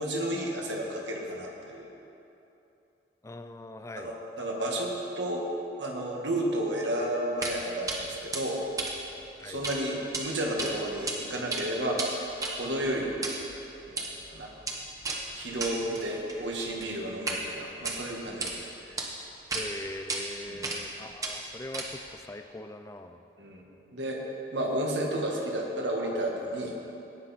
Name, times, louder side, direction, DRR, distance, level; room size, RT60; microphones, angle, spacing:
voice 1, 0.0-1.9 3.9-5.4 5.8-8.6 9.4-12.3 12.6-13.1 13.9-14.5 15.3-19.0 20.5-20.7 23.4-23.6 23.9-24.2 24.5-26.7, right 1 dB, 75° right, -1 dB, 1.6 m, -32 dB
voice 2, 3.2-4.1 9.4-9.6 19.5-23.2, left 1 dB, 15° left, 8 dB, 0.4 m, -41 dB
sound 1, 7.4-7.6 7.9-8.0 8.3-9.8 10.0-10.2 10.6-11.2 11.4-17.4 17.7-18.5 19.0-19.1 19.5-19.6 20.1-20.2 20.6-20.9 21.2-22.1, right 3 dB, 20° right, 1.0 m, -34 dB
17.5 x 6.0 x 4.3 m, 2.8 s
head